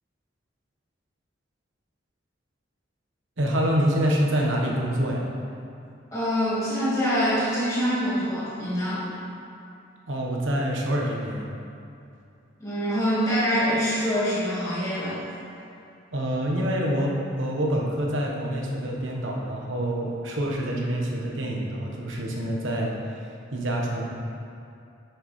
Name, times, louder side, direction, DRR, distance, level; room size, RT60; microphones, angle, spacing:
voice 1, 3.4-5.2 10.1-11.5 16.1-24.0, equal, 85° right, -2 dB, 1.2 m, -26 dB
voice 2, 6.1-9.0 12.6-15.2, equal, 15° left, -11 dB, 1.7 m, -25 dB
9.8 x 6.5 x 3.2 m, 2.5 s
head